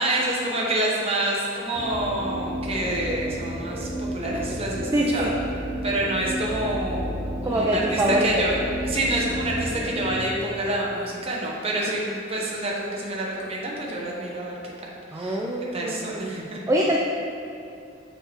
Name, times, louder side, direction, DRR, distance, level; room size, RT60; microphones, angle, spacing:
voice 1, 0.0-5.3 5.8-7.1 7.4-8.5 8.8-14.6 15.1-15.4 15.7-16.6, right 1 dB, 30° right, -4 dB, 0.9 m, -27 dB
sound 1, 1.7-10.3, equal, 45° left, 1.2 m, -31 dB
voice 2, 4.9-5.3 7.4-8.3 15.1-16.3 16.7-17.0, right 1 dB, 15° right, -2 dB, 0.3 m, -24 dB
6.5 x 4.4 x 3.3 m, 2.6 s
head